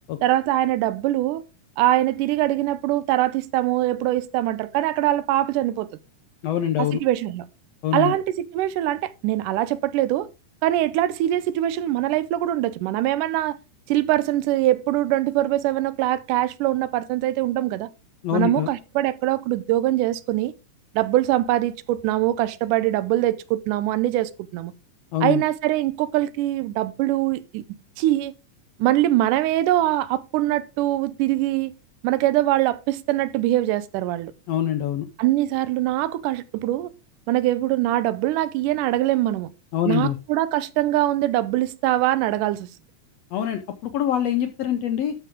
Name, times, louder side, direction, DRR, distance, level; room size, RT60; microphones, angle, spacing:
voice 1, 0.2-1.4 1.8-5.9 6.8-7.5 7.9-10.3 10.6-13.6 13.9-17.9 18.3-20.5 20.9-24.7 25.2-27.6 28.0-28.3 28.8-31.7 32.0-34.3 35.2-36.9 37.3-39.5 39.9-42.7, right 14 dB, 80° right, 2.1 m, -23 dB
voice 2, 6.4-7.0 7.8-8.1 18.2-18.7 25.1-25.4 34.5-35.1 39.7-40.2 43.3-45.1, left 11 dB, 75° left, 1.5 m, -24 dB
12.5 x 5.8 x 3.5 m
omnidirectional pair, 3.7 m